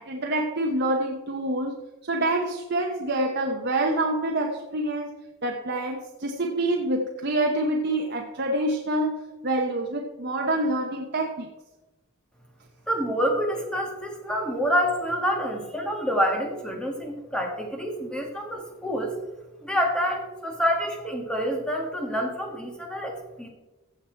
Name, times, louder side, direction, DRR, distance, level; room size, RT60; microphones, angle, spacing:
voice 1, 0.0-1.8 2.0-5.2 5.4-11.5, right 1 dB, 50° right, 2 dB, 0.9 m, -26 dB
voice 2, 12.9-19.1 19.6-23.5, equal, 5° left, 1 dB, 1.6 m, -27 dB
15.0 x 7.2 x 4.5 m, 1.1 s
head